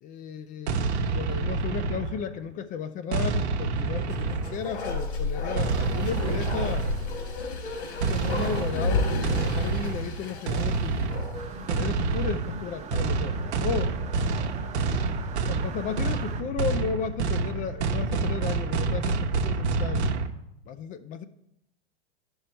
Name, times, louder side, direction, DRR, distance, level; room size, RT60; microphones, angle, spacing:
voice 1, 0.0-6.9 8.1-11.1 11.7-13.9 15.5-20.1 20.7-21.2, left 7 dB, 25° left, 10 dB, 0.4 m, -34 dB
sound 1, 0.7-2.4 3.1-4.8 5.6-7.2 8.0-20.3, right 4 dB, 75° right, 1.0 m, -28 dB
Bark, 4.0-11.6 11.9-12.0, left 2 dB, 70° left, 3.4 m, -32 dB
sound 2, 11.3-16.4, right 4 dB, 20° right, 0.8 m, -41 dB
11.0 x 5.4 x 4.3 m, 0.80 s
hypercardioid pair, 110°, 33 cm